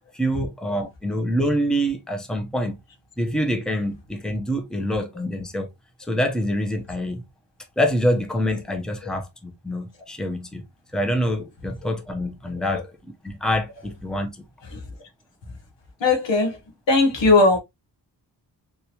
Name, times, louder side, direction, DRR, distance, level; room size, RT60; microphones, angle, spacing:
voice 1, 0.1-2.8 3.2-5.7 6.1-7.2 7.8-10.6 10.9-12.9 13.2-14.4, equal, ahead, 0.8 m, -25 dB
voice 2, 16.0-16.6 16.9-17.6, left 3 dB, 75° left, 1.4 m, -18 dB
3.6 x 2.8 x 2.9 m
cardioid pair, 65°, 44 cm